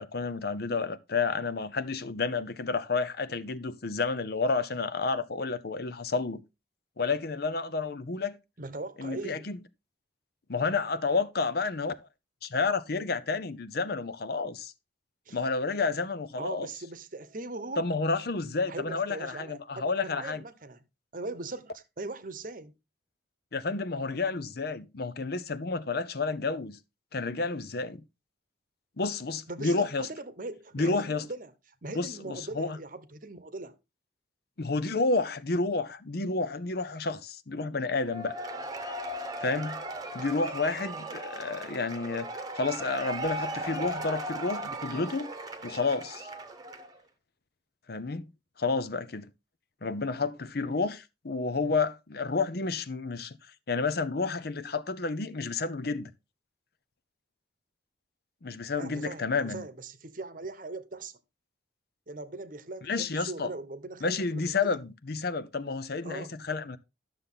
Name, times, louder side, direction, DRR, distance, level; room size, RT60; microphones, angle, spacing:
voice 1, 0.0-6.4 7.0-8.4 9.0-9.6 10.5-12.1 12.4-14.7 15.3-16.7 17.8-20.4 23.5-26.8 27.1-28.0 29.0-30.1 30.7-31.2 31.9-32.8 34.6-38.3 39.4-39.8 40.1-42.3 42.5-45.3 45.6-46.3 47.9-48.3 48.6-49.3 49.8-53.4 53.7-56.1 58.4-59.7 62.8-63.5 64.0-66.8, left 4 dB, 55° left, 0.7 m, -30 dB
voice 2, 8.6-9.6 15.3-15.4 16.3-17.8 18.7-20.8 21.1-22.7 29.5-31.5 31.8-33.8 51.6-51.7 58.7-61.1 62.1-64.8 66.0-66.3, right 2 dB, 45° right, 0.9 m, -40 dB
Cheering / Applause / Crowd, 38.1-47.0, right 1 dB, 20° right, 1.1 m, -37 dB
11.5 x 6.8 x 3.8 m
head